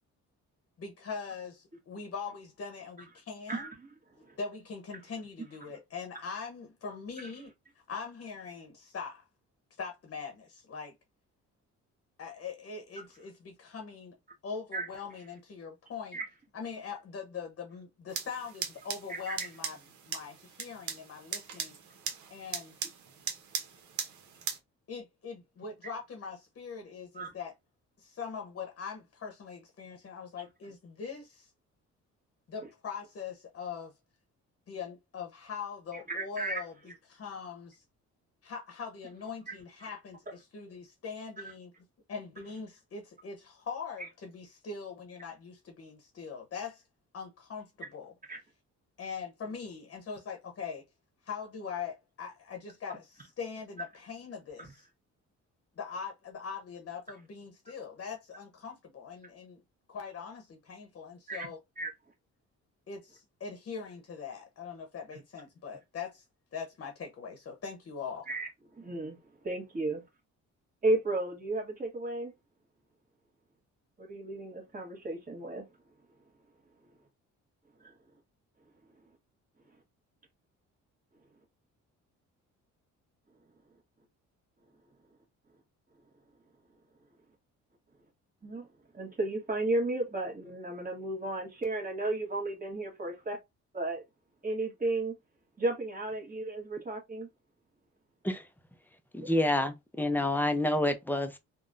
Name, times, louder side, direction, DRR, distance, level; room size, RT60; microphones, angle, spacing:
voice 1, 0.8-3.7 4.3-7.5 7.9-9.2 9.8-10.9 12.2-14.1 14.4-16.2 16.5-19.8 20.1-21.8 22.3-22.7 24.9-27.5 28.0-31.5 32.5-33.9 34.7-37.8 38.4-41.7 42.1-46.8 47.1-48.1 49.0-50.8 51.3-54.9 55.8-59.6 59.9-61.6 62.9-66.2 66.5-68.3, left 5 dB, 45° left, 0.9 m, -42 dB
voice 2, 3.5-3.9 4.2-4.4 14.7-14.9 16.1-16.2 19.1-19.4 27.2-27.3 36.1-36.6 39.5-39.6 48.3-48.4 54.6-54.7 61.3-61.5 61.8-61.9 68.3-68.5 68.8-69.2 69.4-70.0 70.8-72.3 74.0-75.6 77.8-77.9 88.4-88.7 88.9-93.4 93.7-94.0 94.4-95.2 95.6-97.3 99.2-99.3, right 2 dB, 30° right, 1.4 m, -33 dB
sound 1, 18.1-24.6, right 7 dB, 70° right, 0.8 m, -39 dB
voice 3, 99.1-101.4, left 1 dB, 5° left, 0.5 m, -28 dB
3.4 x 2.2 x 2.5 m
cardioid pair, 90°, 30 cm